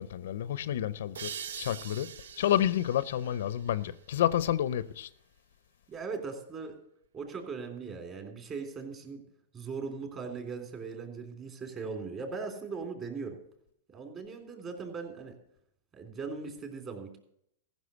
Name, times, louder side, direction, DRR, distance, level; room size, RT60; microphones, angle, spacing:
voice 1, 0.0-2.1 2.4-5.1, left 11 dB, 70° left, 0.5 m, -29 dB
sound 1, 1.1-4.5, right 7 dB, 80° right, 0.5 m, -44 dB
voice 2, 5.9-6.7 7.1-9.2 9.5-13.4 13.9-15.4 15.9-17.2, right 4 dB, 30° right, 3.3 m, -39 dB
15.0 x 6.3 x 8.2 m
hypercardioid pair, 120°, 0 cm